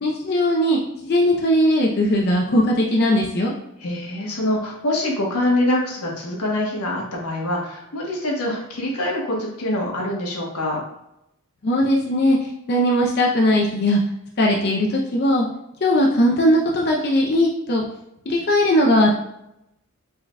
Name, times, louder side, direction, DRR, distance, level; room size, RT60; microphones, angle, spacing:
voice 1, 0.0-3.5 11.6-14.0 14.4-15.5 15.8-17.8 18.3-19.1, left 1 dB, 45° left, -2 dB, 0.5 m, -19 dB
voice 2, 3.8-10.8, left 1 dB, 90° left, -2 dB, 1.2 m, -24 dB
4.7 x 3.7 x 2.2 m, 0.83 s
head